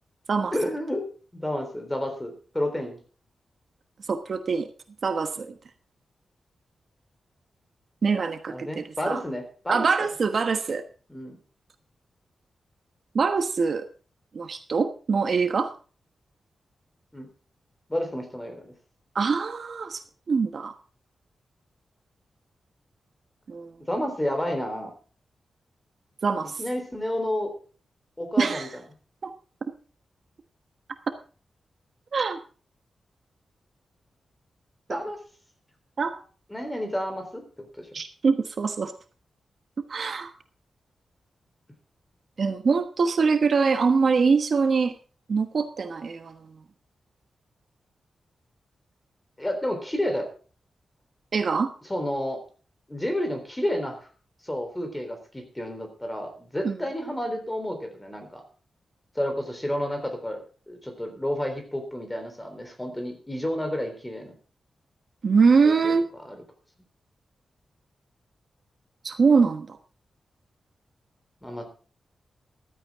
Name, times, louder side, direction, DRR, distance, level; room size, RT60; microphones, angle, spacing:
voice 1, 0.5-1.1 1.3-3.0 8.5-10.1 11.1-11.4 17.1-17.3 17.9-18.7 23.9-24.9 26.4-27.5 28.2-28.7 34.9-35.2 36.5-37.4 37.7-37.9 49.4-50.3 51.9-52.4 52.9-54.0 54.4-58.4 59.2-60.4 60.7-64.3 65.7-65.9 66.2-66.4 71.4-71.7, left 1 dB, 10° left, 6 dB, 3.7 m, -30 dB
voice 2, 4.1-4.7 5.0-5.5 8.0-9.2 9.7-10.8 13.1-13.9 14.3-15.7 19.1-20.0 20.3-20.7 23.5-23.7 26.2-26.6 28.4-28.7 29.2-29.3 32.1-32.4 34.9-35.0 36.0-36.1 37.9-38.9 39.9-40.3 42.4-44.9 45.3-46.5 51.3-51.7 56.6-56.8 65.2-66.0 69.0-69.8, right 5 dB, 50° right, 8 dB, 1.2 m, -23 dB
15.0 x 13.0 x 3.6 m, 0.38 s
wide cardioid pair, 145°, 0 cm